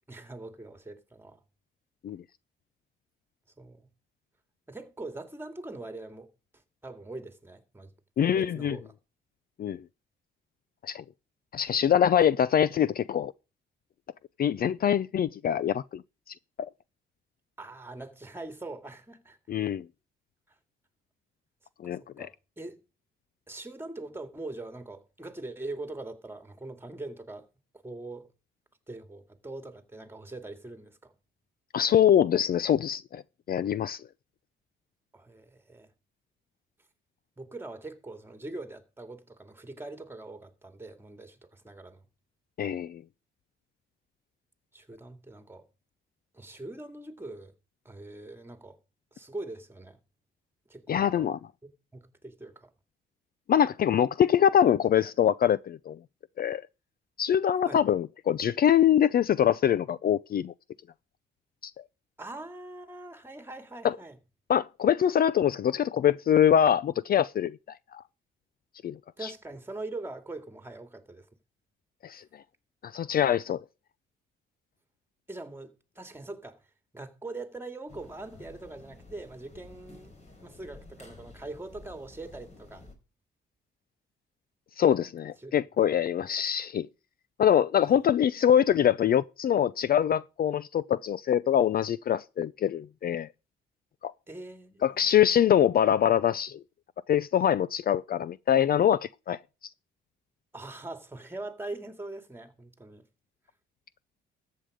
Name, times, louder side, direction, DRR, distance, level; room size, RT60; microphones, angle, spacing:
voice 1, 0.1-1.4 3.6-3.9 4.7-6.3 6.8-7.9 8.2-8.9 17.6-19.4 21.8-22.8 23.5-27.5 27.8-28.3 28.9-31.1 35.1-35.9 37.4-42.0 44.7-45.7 46.3-47.5 47.8-48.8 49.1-50.0 50.7-51.3 51.9-52.7 57.7-57.8 62.2-64.2 69.2-71.3 75.3-76.6 76.9-80.1 80.4-82.9 85.4-85.6 87.9-88.0 94.3-95.2 100.5-103.0, right 2 dB, 10° right, 2.4 m, -42 dB
voice 2, 8.2-8.8 9.6-9.8 10.8-11.0 11.5-13.3 14.4-16.0 16.6-16.7 19.5-19.8 21.8-22.3 31.7-33.2 33.5-34.0 42.6-43.0 50.9-51.4 53.5-56.0 56.4-56.6 57.2-60.5 61.6-61.7 63.8-64.0 64.5-67.6 67.9-68.0 68.8-69.3 72.0-72.2 72.8-73.6 84.8-86.9 87.4-93.3 94.0-94.1 94.8-96.6 97.1-99.4, left 9 dB, 50° left, 0.5 m, -24 dB
sound 1, 77.9-82.9, left 2 dB, 35° left, 4.7 m, -51 dB
14.0 x 8.4 x 5.0 m
cardioid pair, 90°, 20 cm